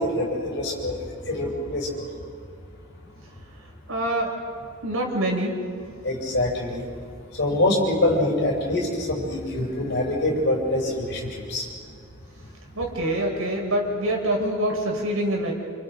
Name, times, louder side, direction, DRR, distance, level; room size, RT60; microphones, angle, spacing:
voice 1, 0.0-2.1 6.0-6.8 7.3-11.7, left 1 dB, 55° left, -2 dB, 7.1 m, -25 dB
voice 2, 3.9-4.3 4.8-5.6 12.8-15.5, right 1 dB, 90° right, 0 dB, 5.7 m, -25 dB
30.0 x 28.5 x 5.4 m, 2.3 s
head